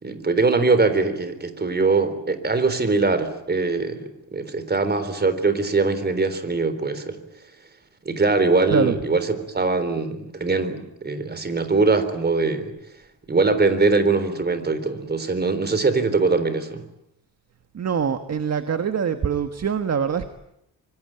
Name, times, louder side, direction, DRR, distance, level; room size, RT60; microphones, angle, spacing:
voice 1, 0.0-7.2 8.1-12.7 13.3-16.8, right 3 dB, 30° right, 12 dB, 3.8 m, -22 dB
voice 2, 17.7-20.3, right 7 dB, 45° right, 9 dB, 1.6 m, -24 dB
25.0 x 25.0 x 8.9 m, 0.79 s
cardioid pair, 120°, 35 cm